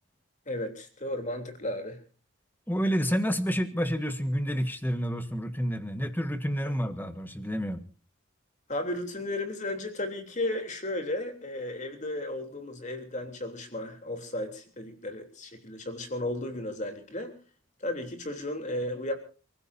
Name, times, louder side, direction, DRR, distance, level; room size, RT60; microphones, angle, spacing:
voice 1, 0.5-2.0 6.6-6.7 8.7-17.3 17.8-19.1, left 1 dB, 35° left, 5 dB, 3.3 m, -34 dB
voice 2, 2.7-7.8, equal, 10° left, 9 dB, 1.5 m, -29 dB
29.0 x 15.5 x 2.7 m, 0.37 s
head